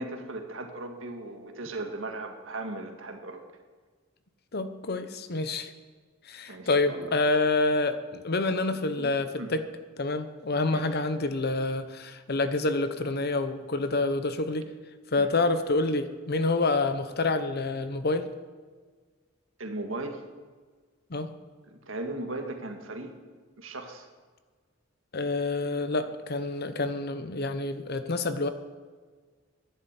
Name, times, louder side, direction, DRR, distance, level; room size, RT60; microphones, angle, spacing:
voice 1, 0.0-3.4 6.5-7.2 9.0-9.5 10.7-10.8 15.2-15.3 19.6-20.2 21.7-23.2 23.6-24.1, right 2 dB, 80° right, 4 dB, 1.9 m, -37 dB
voice 2, 4.5-5.7 6.3-9.6 10.0-14.7 15.1-18.3 21.1-21.3 25.1-28.5, left 3 dB, 55° left, 10 dB, 0.9 m, -27 dB
11.5 x 11.0 x 8.4 m, 1.5 s
head